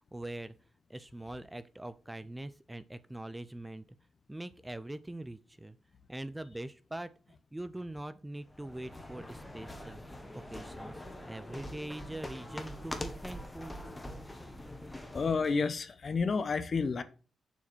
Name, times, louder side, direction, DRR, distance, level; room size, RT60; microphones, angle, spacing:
voice 1, 0.1-0.5 0.9-3.8 4.3-5.8 6.1-10.0 10.3-13.7, right 1 dB, 10° right, 0.4 m, -43 dB
sound 1, 8.4-15.6, left 1 dB, 15° left, 1.3 m, -44 dB
voice 2, 15.1-17.0, left 4 dB, 45° left, 0.9 m, -30 dB
7.0 x 4.8 x 6.1 m
cardioid pair, 105°, 0 cm